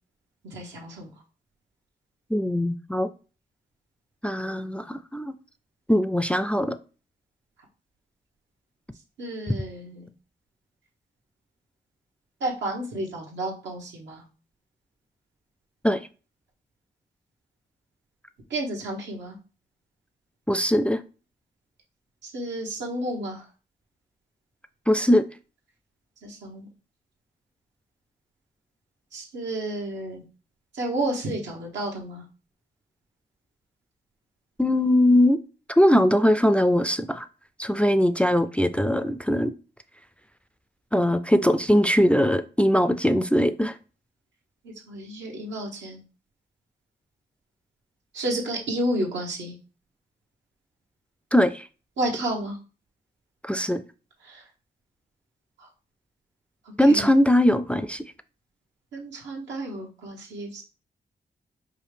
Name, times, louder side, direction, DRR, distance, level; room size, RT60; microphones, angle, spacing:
voice 1, 0.4-1.1 9.2-10.1 12.4-14.2 18.5-19.4 22.2-23.4 26.2-26.7 29.1-30.2 30.7-32.2 44.6-46.0 48.1-49.5 52.0-52.6 54.2-54.4 55.6-55.7 56.8-57.1 58.9-60.6, right 1 dB, 90° right, 1.1 m, -31 dB
voice 2, 2.3-3.1 4.2-5.3 5.9-6.8 15.8-16.0 20.5-21.0 24.9-25.2 34.6-35.4 35.8-37.3 37.6-39.5 40.9-43.8 51.3-51.7 53.4-53.8 56.8-58.0, equal, 5° left, 0.3 m, -21 dB
4.8 x 2.4 x 3.3 m
cardioid pair, 50°, 18 cm